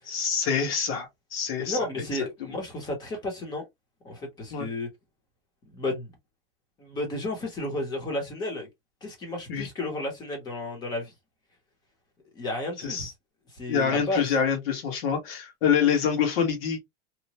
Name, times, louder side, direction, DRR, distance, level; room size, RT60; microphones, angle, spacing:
voice 1, 0.1-1.8 4.5-4.7 9.5-9.7 12.8-13.1 13.7-16.8, left 7 dB, 85° left, 1.4 m, -26 dB
voice 2, 1.6-3.7 4.0-4.9 5.7-6.1 6.8-8.7 9.0-11.1 12.3-13.1 13.5-14.2, left 2 dB, 15° left, 0.8 m, -32 dB
3.0 x 2.1 x 2.8 m
supercardioid pair, 175°, 29 cm